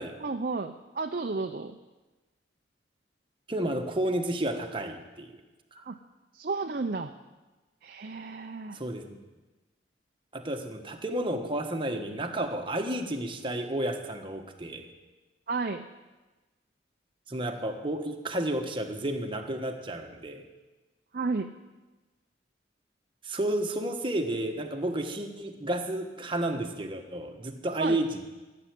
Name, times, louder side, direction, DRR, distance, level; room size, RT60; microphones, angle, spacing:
voice 1, 0.2-1.8 5.8-6.0 6.3-7.1 7.8-8.8 15.5-15.9 21.1-21.5 27.8-28.0, right 3 dB, 50° right, 4 dB, 0.6 m, -32 dB
voice 2, 3.5-5.3 5.7-5.8 8.7-9.2 10.3-14.9 17.3-20.4 23.2-28.2, right 1 dB, 30° right, 4 dB, 1.3 m, -31 dB
15.0 x 7.8 x 9.4 m, 1.2 s
head